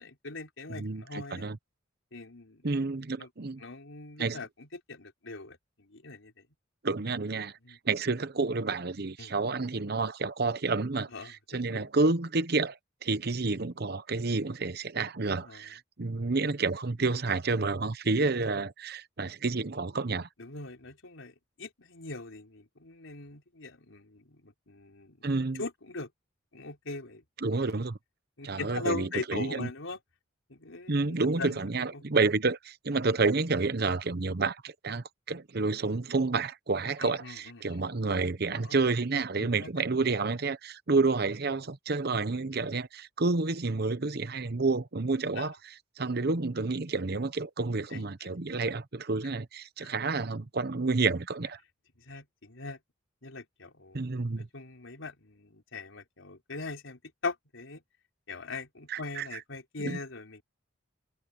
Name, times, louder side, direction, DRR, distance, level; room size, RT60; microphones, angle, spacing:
voice 1, 0.0-1.4 2.1-2.6 3.2-3.3 3.6-6.3 7.6-7.8 9.2-9.3 11.1-11.3 11.7-11.9 15.4-15.6 20.4-25.2 25.6-26.1 26.5-27.2 28.4-30.0 30.5-30.9 31.4-31.6 31.9-32.0 37.0-37.8 38.6-38.8 39.4-39.7 45.4-45.5 47.9-48.4 49.8-49.9 52.0-52.8 53.2-54.0 54.4-57.8 58.3-60.4, left 3 dB, 85° left, 3.9 m, -41 dB
voice 2, 0.7-1.6 2.6-3.6 4.2-4.4 6.8-20.3 25.2-25.6 27.4-28.0 28.4-29.7 30.9-51.6 53.9-54.5 58.9-59.3 59.8-60.0, right 3 dB, 55° right, 0.9 m, -29 dB
head